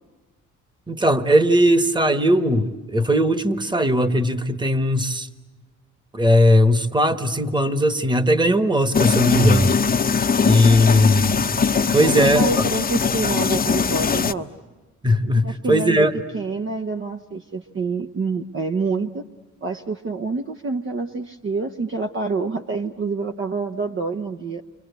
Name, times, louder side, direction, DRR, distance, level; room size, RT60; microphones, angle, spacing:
voice 1, 0.9-5.3 6.1-9.8 10.4-11.3 11.9-12.4 15.0-16.1, equal, 15° right, 11 dB, 1.5 m, -18 dB
sound 1, 8.9-14.3, left 5 dB, 30° left, 0.9 m, -21 dB
voice 2, 10.3-10.9 11.8-14.5 15.4-16.1 16.3-19.2 19.6-24.6, right 4 dB, 40° right, 5 dB, 1.0 m, -27 dB
30.0 x 24.5 x 8.2 m, 1.2 s
cardioid pair, 90°, 30 cm